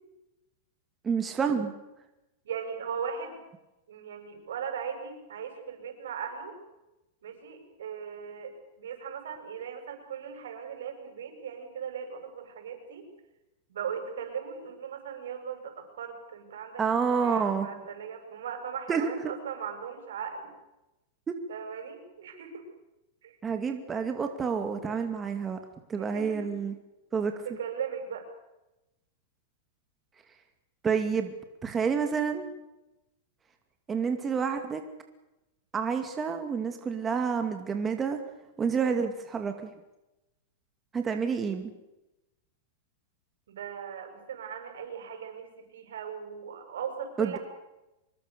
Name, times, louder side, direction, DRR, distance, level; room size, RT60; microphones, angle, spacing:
voice 1, 1.0-1.7 16.8-17.7 18.9-19.3 21.3-21.4 23.4-25.6 25.9-26.7 27.1-27.3 30.8-31.3 31.6-32.4 33.9-34.8 35.7-38.2 38.6-39.7 40.9-41.7 47.2-47.4, right 6 dB, 15° right, 6 dB, 2.4 m, -28 dB
voice 2, 2.4-3.4 3.9-6.6 7.2-13.0 13.7-16.8 17.1-20.5 21.5-22.6 23.2-23.4 25.9-26.5 27.4-28.3 43.5-47.4, right 7 dB, 85° right, 5 dB, 7.7 m, -38 dB
25.0 x 22.0 x 6.9 m, 0.96 s
supercardioid pair, 140°, 0 cm